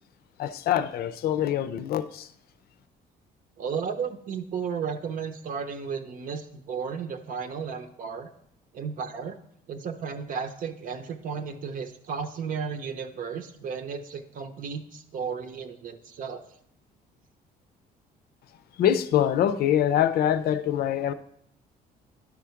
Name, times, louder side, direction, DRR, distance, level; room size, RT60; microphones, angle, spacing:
voice 1, 0.4-2.3 18.8-21.1, left 10 dB, 65° left, 0.5 m, -24 dB
voice 2, 3.6-8.3 8.7-9.4 9.7-16.4, right 6 dB, 55° right, 0.8 m, -34 dB
11.0 x 3.7 x 5.8 m
cardioid pair, 110°, 17 cm